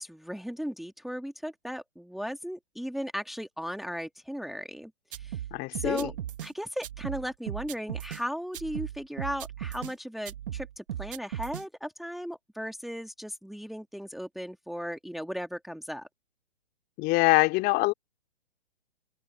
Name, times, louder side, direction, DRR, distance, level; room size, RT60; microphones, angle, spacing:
voice 1, 0.0-5.4 5.7-6.1 6.4-16.1, equal, ahead, 2.2 m, -36 dB
sound 1, 5.1-6.5 6.8-8.2 8.5-9.9 10.3-11.6, right 11 dB, 55° right, 2.3 m, -37 dB
voice 2, 5.5-6.1 17.0-17.9, left 22 dB, 30° left, 3.2 m, -24 dB
figure-of-eight pair, 125°, 32 cm